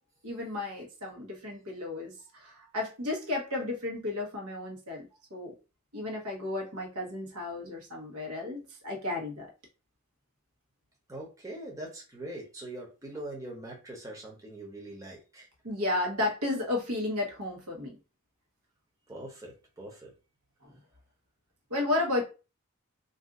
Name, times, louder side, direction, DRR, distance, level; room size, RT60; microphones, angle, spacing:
voice 1, 0.2-5.5 5.9-9.5 15.6-18.0 20.6-20.8 21.7-22.2, left 2 dB, 90° right, 0 dB, 1.1 m, -33 dB
voice 2, 11.1-15.5 19.1-20.1, right 1 dB, 15° right, -3 dB, 0.8 m, -42 dB
2.6 x 2.4 x 3.6 m, 0.32 s
head